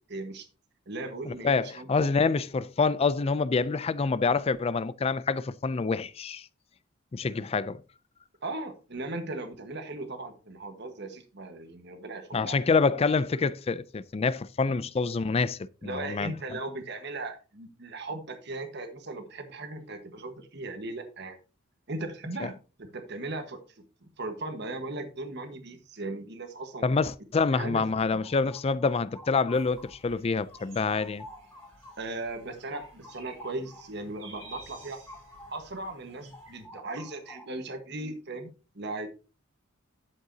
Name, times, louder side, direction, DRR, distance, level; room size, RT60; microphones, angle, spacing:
voice 1, 0.1-0.5 0.9-2.1 8.4-12.6 15.8-21.4 21.9-23.6 24.2-26.9 27.5-27.8 32.0-35.0 35.5-39.1, right 2 dB, 55° right, 1.4 m, -37 dB
voice 2, 1.3-6.5 7.1-7.8 12.3-16.3 22.4-22.5 26.8-31.2, left 4 dB, 30° left, 0.4 m, -27 dB
sound 1, 28.1-30.2 30.5-35.7 36.0-37.7, left 1 dB, 10° left, 1.3 m, -51 dB
sound 2, 29.5-36.6, right 2 dB, 85° right, 4.3 m, -53 dB
11.0 x 7.7 x 2.8 m
head